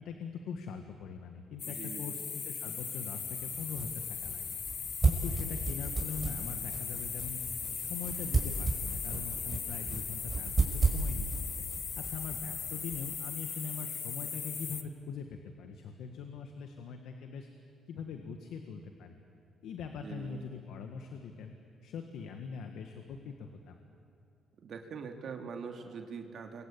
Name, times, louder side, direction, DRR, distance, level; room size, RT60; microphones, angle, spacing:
voice 1, 0.0-4.5 4.8-7.4 7.7-11.7 12.0-17.5 17.9-19.1 19.6-21.5 21.8-23.8, left 6 dB, 80° left, 5 dB, 1.8 m, -42 dB
sound 1, 1.6-14.8, left 6 dB, 55° left, 1.6 m, -38 dB
voice 2, 1.6-2.2 20.0-20.5 24.6-26.7, right 5 dB, 60° right, 4 dB, 2.5 m, -43 dB
sound 2, 3.2-13.1, right 3 dB, 25° right, 5.9 m, -34 dB
28.5 x 23.5 x 8.8 m, 2.6 s
cardioid pair, 90°, 0 cm